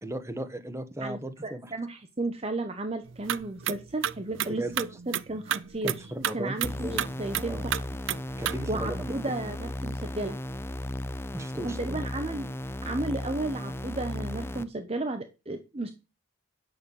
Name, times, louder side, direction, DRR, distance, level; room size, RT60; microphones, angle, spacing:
voice 1, 0.0-1.7 4.5-4.7 5.8-7.0 7.5-7.6 8.4-9.3 11.3-12.0, right 1 dB, 15° right, 8 dB, 1.1 m, -36 dB
voice 2, 1.0-7.8 8.3-8.4 8.7-10.4 11.6-12.5 12.8-15.9, right 2 dB, 30° right, 8 dB, 0.8 m, -34 dB
sound 1, 3.1-8.6, right 10 dB, 65° right, 0.5 m, -32 dB
sound 2, 6.6-14.6, left 1 dB, 10° left, 0.5 m, -35 dB
9.4 x 6.2 x 7.0 m, 0.30 s
head